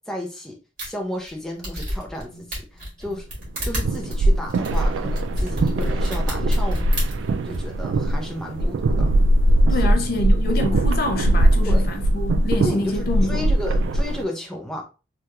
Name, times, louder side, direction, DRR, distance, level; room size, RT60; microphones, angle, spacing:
voice 1, 0.1-3.2 3.6-6.9 7.4-9.1 11.7-11.9 12.6-14.8, left 1 dB, 5° left, 0.6 m, -33 dB
sound 1, 0.8-0.9 1.3-1.4 1.6-2.2 2.5-7.6, equal, 45° right, 1.6 m, -31 dB
Alarm, 1.5-7.2, right 1 dB, 75° left, 0.8 m, -50 dB
sound 2, 3.5-14.2, right 1 dB, 80° right, 0.3 m, -20 dB
voice 2, 9.7-13.5, left 2 dB, 50° left, 0.4 m, -26 dB
3.3 x 2.3 x 2.8 m
head